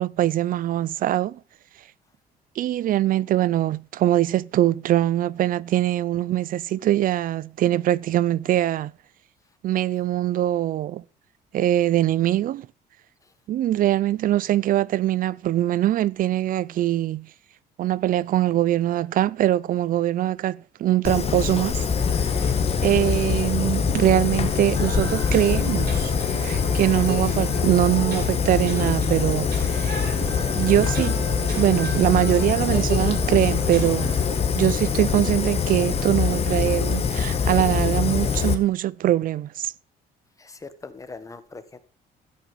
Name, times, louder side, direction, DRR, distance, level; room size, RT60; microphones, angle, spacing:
voice 1, 0.0-1.4 2.6-8.9 9.6-11.0 11.5-12.7 13.5-17.3 17.8-21.8 22.3-22.5 22.8-30.0 30.6-31.2 31.6-34.2 34.5-39.7, right 13 dB, 55° right, 0.5 m, -22 dB
Fire, 21.0-38.5, left 6 dB, 35° left, 1.8 m, -24 dB
sound 1, 24.7-34.2, right 4 dB, 70° right, 7.0 m, -36 dB
voice 2, 40.4-41.8, left 3 dB, 20° left, 1.6 m, -41 dB
13.0 x 8.8 x 5.3 m
cardioid pair, 110°, 17 cm